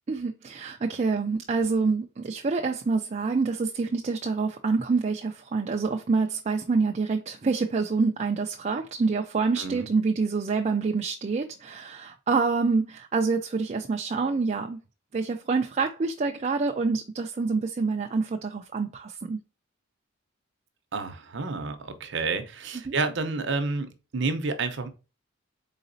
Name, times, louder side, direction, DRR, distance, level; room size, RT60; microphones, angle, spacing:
voice 1, 0.1-14.8 15.1-19.4 22.9-23.0, right 4 dB, 35° right, 0.4 m, -27 dB
voice 2, 9.6-9.9 20.9-24.9, right 3 dB, 60° right, 0.7 m, -30 dB
4.0 x 3.9 x 2.6 m
head